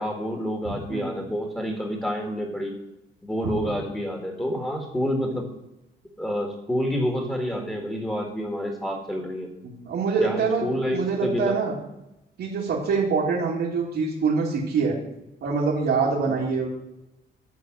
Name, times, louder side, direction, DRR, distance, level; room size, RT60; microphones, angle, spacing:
voice 1, 0.0-2.7 3.2-5.4 6.2-9.5 10.2-11.5 16.3-16.4, equal, 10° left, 2 dB, 1.8 m, -28 dB
voice 2, 0.9-1.2 3.4-3.5 9.6-11.8 12.4-15.0 15.4-16.7, right 5 dB, 70° right, -7 dB, 2.2 m, -25 dB
11.5 x 4.2 x 7.4 m, 0.91 s
cardioid pair, 90°, 20 cm